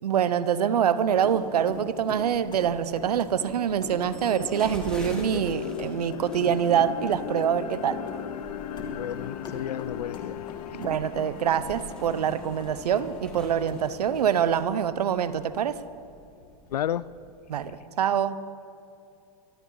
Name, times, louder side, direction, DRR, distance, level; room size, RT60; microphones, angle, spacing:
voice 1, 0.0-8.0 10.8-15.8 17.5-18.4, right 8 dB, 85° right, 14 dB, 0.9 m, -25 dB
sound 1, 1.0-14.4, left 2 dB, 25° left, 2.5 m, -44 dB
sound 2, 2.3-17.7, equal, 5° left, 3.0 m, -46 dB
sound 3, 3.6-15.4, left 9 dB, 70° left, 1.1 m, -39 dB
voice 2, 8.9-10.4 16.7-17.1, left 11 dB, 90° left, 20 dB, 0.5 m, -32 dB
23.5 x 14.0 x 4.0 m, 2.6 s
hypercardioid pair, 120°, 20 cm